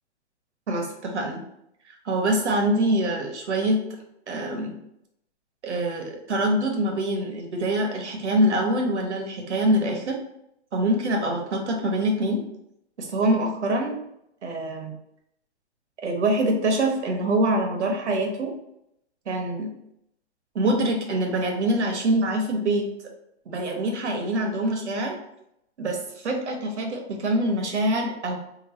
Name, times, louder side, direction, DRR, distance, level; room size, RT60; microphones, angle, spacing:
voice 1, 0.7-1.4 2.0-3.8 4.3-4.7 5.6-10.2 10.7-12.4 13.0-14.0 14.4-14.9 16.0-18.5 19.3-19.7 20.5-22.9 23.5-25.2 25.8-28.4, right 1 dB, 85° right, 2 dB, 1.1 m, -24 dB
3.0 x 2.0 x 4.0 m, 0.78 s
hypercardioid pair, 170°, 34 cm